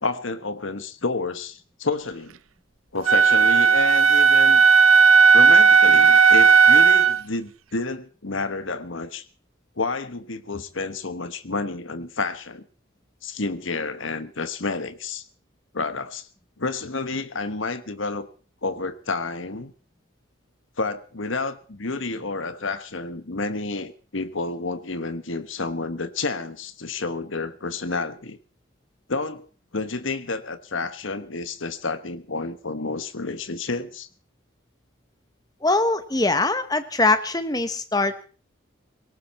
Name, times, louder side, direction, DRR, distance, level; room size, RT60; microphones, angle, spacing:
voice 1, 0.0-2.4 2.9-4.6 5.3-9.3 9.8-12.6 13.2-15.2 15.7-16.3 16.6-18.3 18.6-19.7 20.8-28.4 29.1-29.5 29.7-34.1, left 3 dB, 70° left, 12 dB, 1.3 m, -30 dB
Wind instrument woodwind instrument, 3.1-7.2, right 5 dB, 90° right, 0.7 m, -14 dB
voice 2, 35.6-38.3, left 2 dB, 20° left, 11 dB, 1.2 m, -22 dB
18.0 x 18.0 x 4.3 m, 0.38 s
head